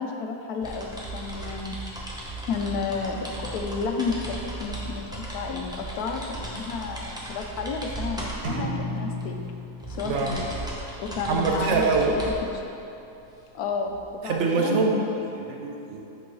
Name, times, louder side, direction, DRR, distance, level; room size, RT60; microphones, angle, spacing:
voice 1, 0.0-1.8 2.5-9.4 9.9-10.5 11.0-12.6 13.5-14.8, left 4 dB, 80° left, 3 dB, 1.1 m, -31 dB
sound 1, 0.6-14.3, right 2 dB, 5° right, 0.5 m, -37 dB
sound 2, 8.4-10.4, equal, 90° right, 1.6 m, -33 dB
voice 2, 9.9-10.3 11.3-12.1 14.2-16.0, right 4 dB, 55° right, 1 dB, 1.0 m, -25 dB
8.3 x 5.4 x 3.1 m, 2.9 s
omnidirectional pair, 1.6 m